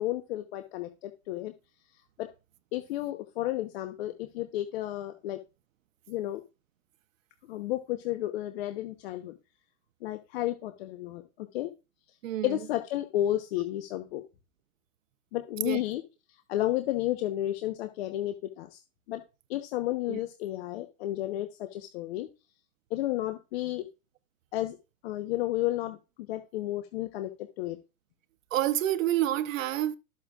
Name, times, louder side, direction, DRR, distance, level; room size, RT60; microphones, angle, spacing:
voice 1, 0.0-1.5 2.2-2.3 2.7-5.4 6.1-6.4 7.5-9.3 10.0-11.7 12.4-14.2 15.3-16.0 16.5-18.8 19.1-19.2 19.5-22.3 22.9-23.8 24.5-24.8 25.0-26.0 26.3-27.8, left 14 dB, 45° left, 1.1 m, -32 dB
voice 2, 12.2-12.6 15.6-15.8 20.1-20.2 28.5-30.0, right 13 dB, 60° right, 1.0 m, -28 dB
13.0 x 8.4 x 2.4 m
hypercardioid pair, 140°, 45 cm